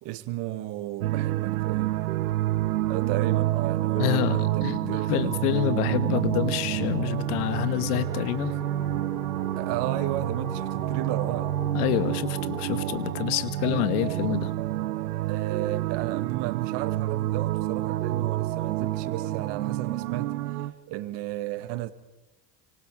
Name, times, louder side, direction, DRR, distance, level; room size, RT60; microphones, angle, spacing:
voice 1, 0.0-2.0 2.9-5.3 9.6-11.6 15.3-20.3 20.9-21.9, right 15 dB, 65° right, 2.1 m, -33 dB
sound 1, 1.0-20.7, right 14 dB, 85° right, 1.4 m, -28 dB
voice 2, 4.0-8.6 11.7-14.5, left 13 dB, 80° left, 2.0 m, -27 dB
sound 2, 6.3-13.2, equal, 5° left, 6.4 m, -43 dB
29.5 x 26.0 x 5.0 m
hypercardioid pair, 75°, 45 cm